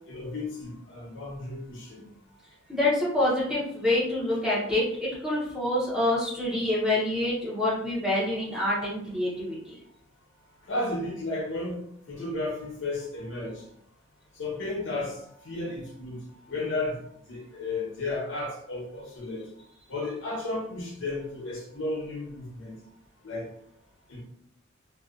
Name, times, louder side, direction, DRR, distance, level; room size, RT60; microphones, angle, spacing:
voice 1, 0.1-2.1 10.7-11.8 12.1-13.6 14.4-19.5 19.9-22.7 23.2-23.5 24.1-24.2, left 2 dB, 70° left, 0.9 m, -33 dB
voice 2, 2.7-9.7, left 1 dB, 5° right, 0.8 m, -26 dB
2.7 x 2.3 x 2.4 m
head